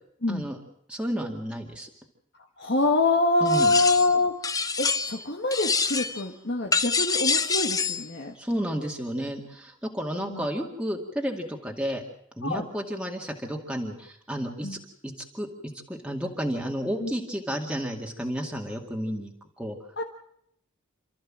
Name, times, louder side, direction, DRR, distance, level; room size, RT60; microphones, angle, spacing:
voice 1, 0.3-0.6 0.9-1.9 3.4-3.8 8.4-12.0 12.4-19.8, equal, 5° right, 1 dB, 2.1 m, -32 dB
voice 2, 2.6-4.3 4.8-8.3 10.2-10.4 12.4-12.7 14.6-14.8 17.0-17.1 20.0-20.1, left 2 dB, 50° left, 1 dB, 1.7 m, -25 dB
sound 1, 3.5-4.1 4.4-5.2 5.5-6.2 6.7-8.0, left 5 dB, 15° left, 0.8 m, -26 dB
28.0 x 14.0 x 7.5 m, 0.72 s
head